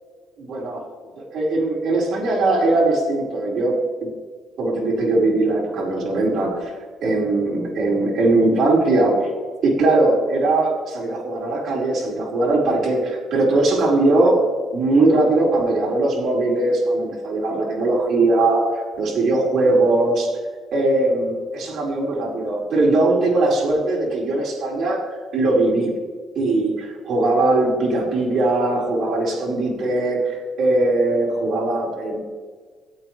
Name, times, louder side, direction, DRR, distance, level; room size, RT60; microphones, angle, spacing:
voice 1, 0.4-0.8 1.2-4.1 4.6-6.7 7.0-9.3 9.6-20.4 20.7-25.0 25.3-25.9 26.3-32.2, right 2 dB, 70° right, -3 dB, 4.6 m, -20 dB
25.0 x 8.5 x 3.3 m, 1.5 s
cardioid pair, 90°, 0 cm